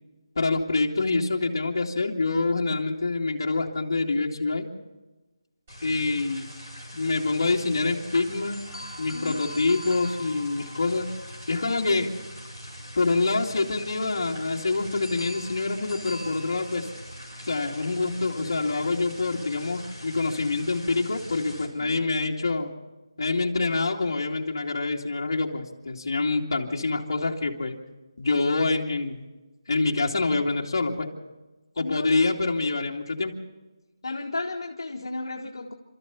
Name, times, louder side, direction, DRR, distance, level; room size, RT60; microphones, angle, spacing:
voice 1, 0.4-4.6 5.8-6.5 6.9-8.6 9.0-11.1 11.5-12.1 13.0-16.9 17.4-22.7 23.2-27.8 28.2-29.2 29.7-31.1 31.8-33.3, left 3 dB, 40° left, -1 dB, 2.4 m, -26 dB
sound 1, 5.7-21.7, equal, 20° right, 4.6 m, -43 dB
sound 2, 8.5-12.6 15.0-17.4, left 1 dB, ahead, 6.0 m, -44 dB
voice 2, 31.8-32.1 34.0-35.7, left 2 dB, 60° left, 0 dB, 1.6 m, -33 dB
28.0 x 13.5 x 7.1 m, 1.2 s
figure-of-eight pair, 175°, 3 cm